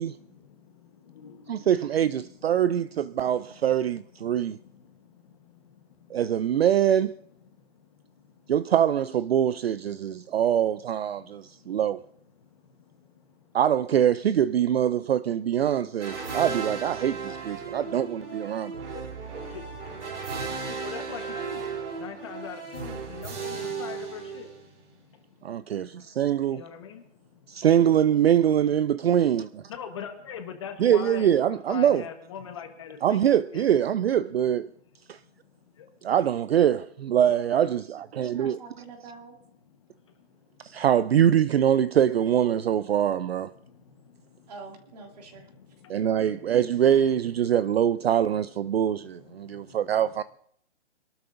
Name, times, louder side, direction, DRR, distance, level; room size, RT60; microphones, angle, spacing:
voice 1, 0.0-3.8 4.2-6.6 7.4-8.5 9.5-9.6 9.9-10.4 11.1-11.8 12.3-13.6 15.0-15.1 15.4-16.5 17.0-18.0 18.3-27.6 29.0-29.2 29.7-31.3 31.7-33.8 35.0-36.1 39.6-40.8 43.2-44.5 45.1-50.2, left 7 dB, 25° left, 1.2 m, -46 dB
voice 2, 1.5-4.6 6.1-7.2 8.5-12.0 13.5-18.8 25.4-26.6 27.5-29.6 30.8-32.0 33.0-34.7 35.1-35.2 36.0-38.6 40.6-43.5 45.9-50.2, right 10 dB, 60° right, 0.5 m, -23 dB
sound 1, 16.0-24.9, right 5 dB, 75° right, 3.6 m, -35 dB
voice 3, 38.1-39.3 44.5-45.5, right 4 dB, 35° right, 2.5 m, -45 dB
26.0 x 12.5 x 2.6 m
hypercardioid pair, 175°, 36 cm